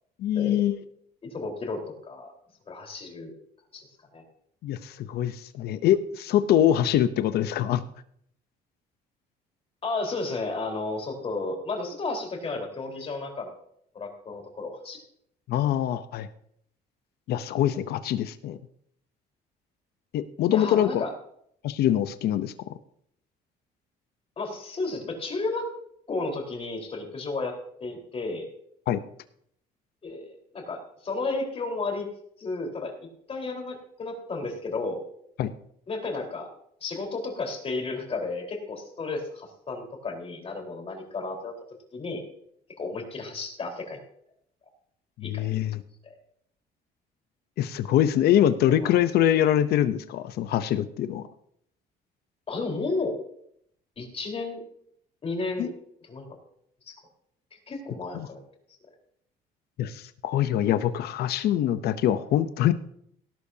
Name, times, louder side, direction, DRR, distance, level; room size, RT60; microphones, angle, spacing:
voice 1, 0.2-0.8 4.6-7.8 15.5-16.3 17.3-18.6 20.1-21.0 21.6-22.5 28.9-29.0 35.4-35.5 45.2-45.8 47.6-51.3 55.6-55.7 58.1-58.3 59.8-62.7, left 11 dB, 70° left, 12 dB, 0.8 m, -24 dB
voice 2, 1.2-2.3 2.7-3.3 3.7-3.9 4.1-4.2 9.8-13.5 13.9-15.0 20.5-21.1 24.4-25.7 26.1-28.5 30.0-32.1 32.4-33.0 33.3-35.0 35.9-36.5 36.8-41.5 41.9-42.2 42.8-44.0 45.2-45.4 46.0-46.1 48.7-48.9 52.5-53.2 54.0-54.6 55.2-55.7 56.1-56.4 56.9-57.0 57.5-58.4, left 3 dB, 35° left, 1 dB, 4.4 m, -33 dB
18.0 x 12.0 x 2.8 m, 0.68 s
cardioid pair, 110°, 17 cm